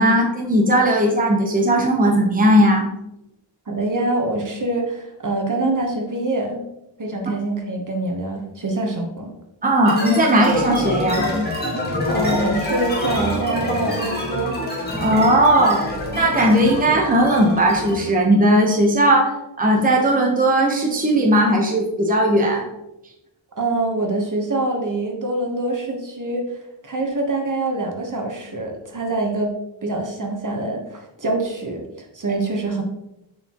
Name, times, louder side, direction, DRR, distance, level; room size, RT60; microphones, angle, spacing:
voice 1, 0.0-2.9 9.6-11.3 15.0-19.3 19.6-22.7, right 1 dB, 20° right, 0 dB, 1.0 m, -17 dB
voice 2, 3.7-6.7 7.0-9.3 12.1-14.5 23.6-29.5 29.8-32.8, right 2 dB, 45° right, 2 dB, 1.2 m, -25 dB
sound 1, 9.8-18.1, left 1 dB, 20° left, 1.8 m, -26 dB
6.9 x 5.6 x 3.0 m, 0.90 s
wide cardioid pair, 120°, 45 cm